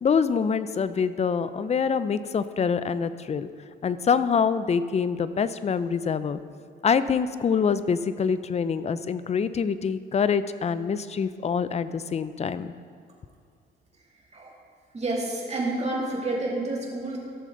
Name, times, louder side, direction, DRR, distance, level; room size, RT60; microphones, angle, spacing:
voice 1, 0.0-3.5 3.8-6.4 6.8-12.7, left 6 dB, 35° left, 14 dB, 0.5 m, -25 dB
voice 2, 14.9-17.2, right 2 dB, 35° right, -3 dB, 2.7 m, -29 dB
16.0 x 6.6 x 3.8 m, 2.3 s
cardioid pair, 90°, 20 cm